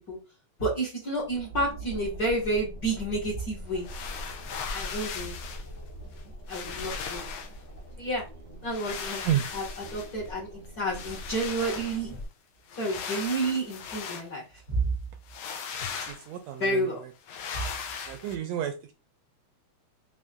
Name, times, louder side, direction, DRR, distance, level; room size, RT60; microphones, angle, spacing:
voice 1, 0.6-3.9 4.7-5.3 6.5-7.3 8.0-8.2 8.6-9.2 9.5-12.1 12.8-14.9 16.6-17.0 17.5-17.7, right 2 dB, 40° left, -2 dB, 1.8 m, -30 dB
sound 1, 1.1-12.3, equal, 10° left, 1.0 m, -42 dB
sound 2, 3.8-5.7 6.2-6.3 6.5-7.6 8.7-10.3 10.9-12.1 12.7-14.3 15.3-16.4 17.3-18.4, left 6 dB, 80° left, 2.1 m, -38 dB
voice 2, 16.3-16.8 18.1-18.9, right 11 dB, 80° right, 6 dB, 1.6 m, -29 dB
5.4 x 3.4 x 2.5 m, 0.29 s
omnidirectional pair, 3.4 m